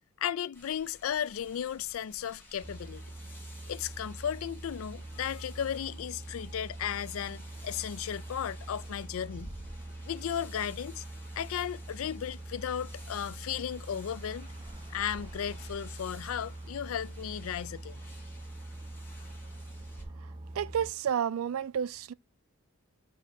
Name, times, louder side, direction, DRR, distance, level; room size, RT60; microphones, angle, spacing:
voice 1, 0.2-3.0 3.7-9.5 10.1-11.0 11.4-14.5 14.9-18.0, left 9 dB, 80° left, 0.4 m, -35 dB
sound 1, 0.5-20.0, left 1 dB, 10° left, 1.5 m, -53 dB
sound 2, 2.6-20.9, right 2 dB, 25° right, 0.7 m, -44 dB
voice 2, 20.5-22.1, right 8 dB, 80° right, 0.3 m, -30 dB
7.2 x 2.8 x 5.1 m
head